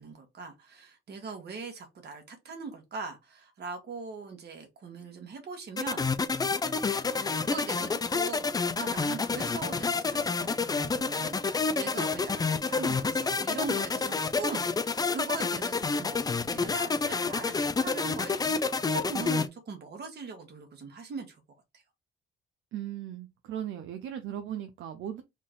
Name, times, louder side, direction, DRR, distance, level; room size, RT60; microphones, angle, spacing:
voice 1, 0.0-6.1 7.0-8.5 8.7-21.4, right 4 dB, 55° right, 1.4 m, -41 dB
sound 1, 5.8-19.5, left 4 dB, 20° left, 0.4 m, -29 dB
voice 2, 22.7-25.2, right 10 dB, 75° right, 0.5 m, -37 dB
3.7 x 2.4 x 3.6 m
cardioid pair, 90°, 20 cm